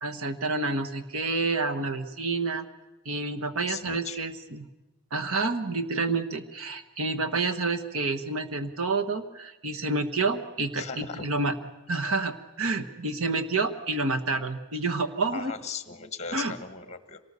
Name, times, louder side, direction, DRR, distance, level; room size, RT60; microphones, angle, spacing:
voice 1, 0.0-2.7 3.0-4.7 5.1-11.5 11.9-15.5 16.3-16.5, right 3 dB, 65° right, 10 dB, 1.4 m, -29 dB
voice 2, 3.7-4.2 10.7-11.3 15.3-17.2, left 5 dB, 30° left, 11 dB, 1.4 m, -38 dB
26.0 x 19.0 x 6.9 m, 1.1 s
head